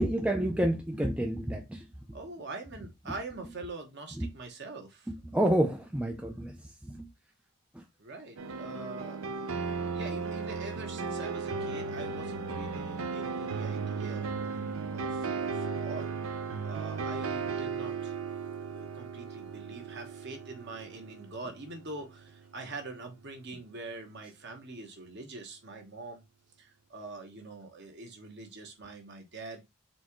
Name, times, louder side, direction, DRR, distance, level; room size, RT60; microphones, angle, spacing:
voice 1, 0.0-1.9 4.2-4.3 5.1-7.1 7.7-7.8, right 1 dB, 5° right, 0.4 m, -29 dB
voice 2, 2.1-5.1 8.0-9.2 9.9-14.3 14.9-16.1 16.6-18.2 18.7-26.2 26.6-29.6, right 3 dB, 50° right, 1.1 m, -44 dB
sound 1, 8.4-22.3, right 5 dB, 65° right, 0.5 m, -36 dB
4.2 x 3.4 x 3.0 m
head